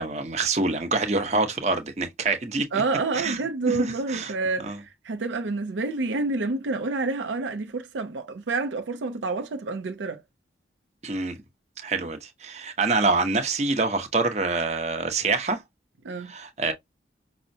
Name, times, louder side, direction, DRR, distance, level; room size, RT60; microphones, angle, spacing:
voice 1, 0.0-2.7 3.1-4.3 4.6-4.8 11.0-11.4 11.8-15.6 16.2-16.7, right 3 dB, 40° right, 0.8 m, -26 dB
voice 2, 2.7-10.2 16.0-16.3, right 3 dB, 90° right, 0.5 m, -28 dB
5.4 x 2.0 x 2.6 m
head